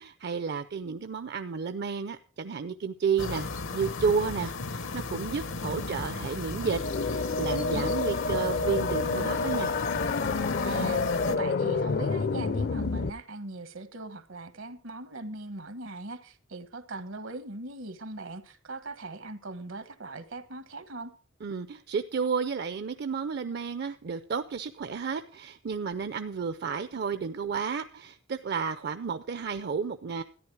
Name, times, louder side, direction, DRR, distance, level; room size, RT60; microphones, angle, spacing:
voice 1, 0.0-3.5 3.7-6.8 7.1-9.7 21.4-30.2, right 5 dB, 55° right, 0.5 m, -31 dB
sound 1, 3.2-11.4, left 3 dB, 75° left, 0.9 m, -35 dB
sound 2, 6.6-13.1, left 4 dB, 55° left, 0.5 m, -29 dB
voice 2, 10.6-21.1, right 2 dB, 80° right, 1.3 m, -40 dB
13.5 x 10.0 x 4.7 m
head